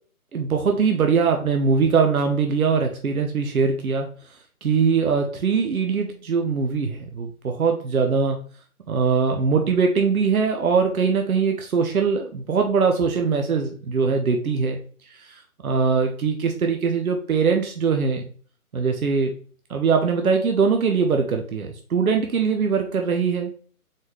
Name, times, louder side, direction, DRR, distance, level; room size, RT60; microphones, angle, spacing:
voice 1, 0.3-4.1 4.6-8.4 8.9-14.8 15.1-18.3 18.7-19.3 19.7-23.5, right 5 dB, 75° right, 4 dB, 0.8 m, -22 dB
4.2 x 3.9 x 3.3 m, 0.44 s
figure-of-eight pair, 150°, 44 cm